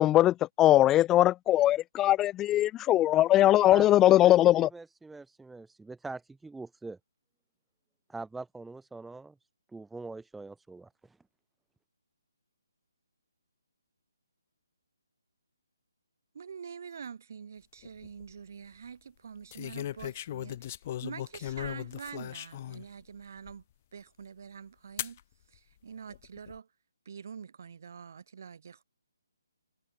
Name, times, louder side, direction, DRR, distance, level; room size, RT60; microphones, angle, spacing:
voice 1, 0.0-4.7, left 14 dB, 15° left, 0.5 m, -21 dB
voice 2, 3.7-7.0 8.1-9.3 9.7-10.9, right 3 dB, 5° right, 1.0 m, -43 dB
voice 3, 16.3-20.8 21.0-23.6 23.9-25.2 25.5-26.7 27.0-28.8, right 6 dB, 50° right, 5.2 m, -45 dB
sound 1, 17.8-18.3 19.5-22.8 23.5-23.6 25.0-25.2 26.1-26.6, left 12 dB, 35° left, 4.8 m, -38 dB
figure-of-eight pair, 140°, 2 cm